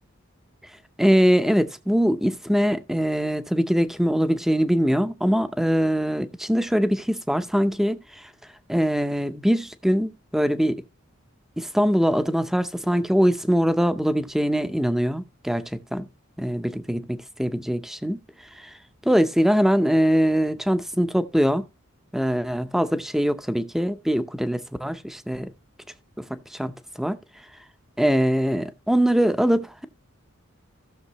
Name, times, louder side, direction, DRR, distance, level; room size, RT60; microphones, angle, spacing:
voice 1, 1.0-8.0 8.7-10.8 11.6-16.1 16.4-18.2 19.0-21.6 22.1-25.5 26.3-27.2 28.0-29.8, equal, ahead, 0.6 m, -22 dB
16.0 x 6.5 x 3.0 m
head